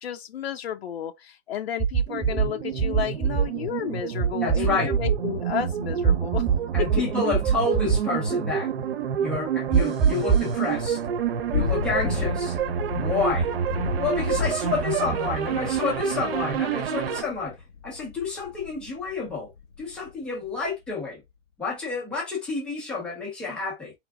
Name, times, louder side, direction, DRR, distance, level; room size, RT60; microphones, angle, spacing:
voice 1, 0.0-6.4, left 9 dB, 55° left, 0.8 m, -32 dB
sound 1, 1.8-2.5 2.8-3.4 4.2-5.1 6.0-7.0 7.3-8.0 9.7-10.5, right 7 dB, 15° right, 1.1 m, -21 dB
sound 2, 2.1-17.2, right 8 dB, 55° right, 0.9 m, -28 dB
voice 2, 4.4-4.9 6.7-8.7 9.2-11.0 11.5-12.6 12.9-13.5 14.0-17.6 17.8-19.5 19.8-21.2 21.6-23.9, left 4 dB, 5° left, 0.6 m, -29 dB
Thunder / Rain, 10.6-20.1, left 6 dB, 90° left, 1.7 m, -34 dB
4.4 x 3.4 x 3.4 m
hypercardioid pair, 175°, 37 cm